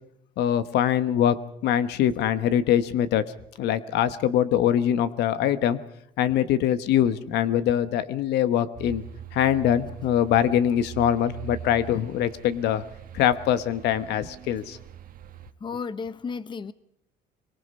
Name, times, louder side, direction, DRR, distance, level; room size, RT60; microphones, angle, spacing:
voice 1, 0.4-3.3 3.6-5.8 6.2-9.0 9.3-12.8 13.1-14.8, left 10 dB, 80° left, 13 dB, 1.2 m, -23 dB
sound 1, 8.8-15.5, right 9 dB, 55° right, 1.6 m, -42 dB
voice 2, 15.6-16.7, left 5 dB, 30° left, 15 dB, 0.9 m, -33 dB
24.0 x 23.5 x 5.5 m, 0.75 s
cardioid pair, 110°, 17 cm